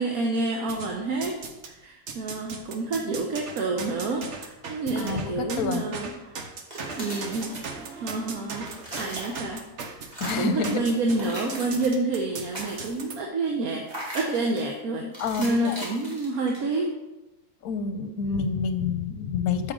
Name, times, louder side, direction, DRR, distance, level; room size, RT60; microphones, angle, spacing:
voice 1, 0.0-1.4 1.7-6.4 7.0-8.7 9.0-9.6 9.9-13.9 14.1-15.1 15.4-16.9, right 2 dB, 75° right, 1 dB, 1.4 m, -28 dB
sound 1, 0.7-1.7 2.1-13.2, right 4 dB, 55° right, 1.1 m, -38 dB
voice 2, 5.0-5.9 10.2-10.8 15.2-15.9 17.6-19.7, left 5 dB, 75° left, 9 dB, 1.2 m, -28 dB
sound 2, 6.5-8.1 8.4-9.7 10.0-10.6 11.0-12.0 12.3-13.1 13.9-14.7 15.1-16.8, equal, 25° right, 2.4 m, -39 dB
8.4 x 7.2 x 3.8 m, 1.0 s
omnidirectional pair, 1.6 m